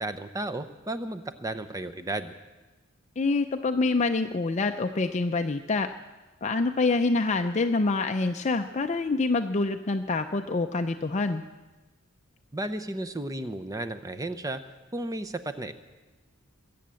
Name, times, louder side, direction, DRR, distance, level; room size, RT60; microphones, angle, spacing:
voice 1, 0.0-2.3 12.5-14.6 14.9-15.7, right 1 dB, 15° right, 10 dB, 0.7 m, -33 dB
voice 2, 3.2-5.9 6.4-11.4, left 3 dB, 35° left, 6 dB, 0.5 m, -26 dB
21.0 x 8.5 x 7.6 m, 1.2 s
head